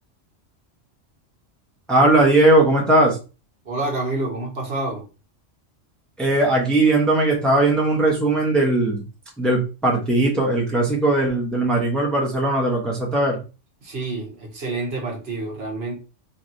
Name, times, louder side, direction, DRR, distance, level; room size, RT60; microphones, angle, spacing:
voice 1, 1.9-3.2 6.2-9.0 9.4-13.4, right 2 dB, ahead, 0.9 m, -18 dB
voice 2, 3.6-5.1 13.8-15.9, right 2 dB, 55° right, 1.4 m, -28 dB
3.1 x 2.9 x 3.9 m
omnidirectional pair, 1.3 m